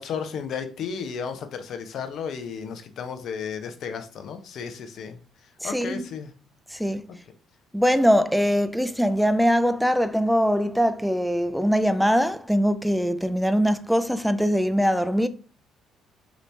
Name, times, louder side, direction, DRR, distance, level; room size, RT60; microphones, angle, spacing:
voice 1, 0.0-5.2 5.6-6.3, left 6 dB, 65° left, 0.5 m, -33 dB
voice 2, 5.6-6.0 6.7-7.1 7.7-15.3, equal, ahead, 0.4 m, -22 dB
2.9 x 2.7 x 3.2 m
hypercardioid pair, 60°, 0 cm